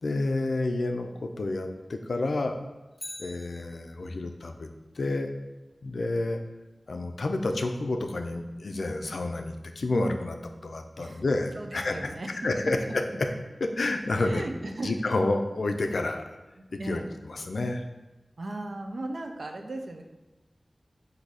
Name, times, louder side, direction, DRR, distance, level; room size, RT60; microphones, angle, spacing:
voice 1, 0.0-2.6 3.2-4.7 5.0-5.3 5.8-6.4 6.9-10.4 10.6-12.1 12.4-13.0 13.6-14.4 14.8-16.2 16.7-17.8, left 2 dB, 90° left, 5 dB, 0.3 m, -29 dB
Bicycle, 2.9-4.3 12.6-12.7, left 1 dB, 30° left, 0.6 m, -44 dB
voice 2, 11.5-12.3 12.6-13.0 14.2-14.9 16.6-17.2 18.4-20.0, right 2 dB, 75° right, 4 dB, 0.5 m, -37 dB
4.7 x 2.6 x 4.0 m, 1.1 s
wide cardioid pair, 70°, 0 cm